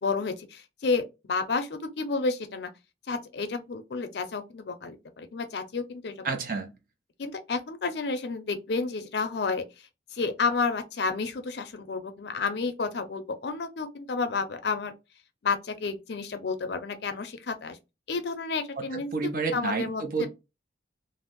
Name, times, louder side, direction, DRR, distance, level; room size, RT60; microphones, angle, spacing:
voice 1, 0.0-2.7 3.1-6.3 7.2-9.6 10.1-14.9 15.4-17.8 18.1-20.3, left 4 dB, 65° left, 0.5 m, -31 dB
voice 2, 6.2-6.7 18.9-20.3, right 4 dB, 50° right, 0.6 m, -30 dB
2.6 x 2.0 x 3.6 m
head